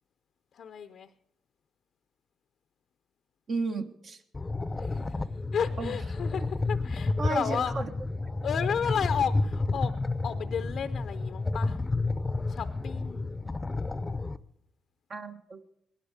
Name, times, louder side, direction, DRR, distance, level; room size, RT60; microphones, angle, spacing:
voice 1, 0.5-1.1 4.8-5.3 5.5-7.7 8.4-10.0 10.2-11.8 12.5-13.4, left 7 dB, 65° left, 10 dB, 0.6 m, -33 dB
voice 2, 3.5-4.2 5.8-6.0 7.2-7.9 15.1-15.6, right 3 dB, 50° right, 6 dB, 1.3 m, -33 dB
sound 1, 4.3-14.4, left 3 dB, 25° left, 0.6 m, -31 dB
18.5 x 11.5 x 5.0 m, 0.74 s
supercardioid pair, 70°, 0 cm